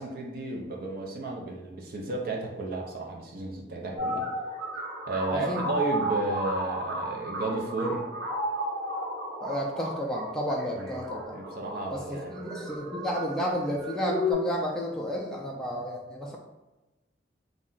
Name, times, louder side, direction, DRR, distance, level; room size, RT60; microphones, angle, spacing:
voice 1, 0.0-4.3 5.1-8.0 10.8-11.0 11.3-12.5, right 2 dB, 55° right, 0 dB, 0.5 m, -33 dB
sound 1, 4.0-14.3, equal, 75° right, 1.1 m, -33 dB
voice 2, 5.3-5.7 9.4-11.4 11.9-16.4, equal, 5° left, -3 dB, 0.3 m, -32 dB
2.4 x 2.1 x 3.7 m, 1.1 s
head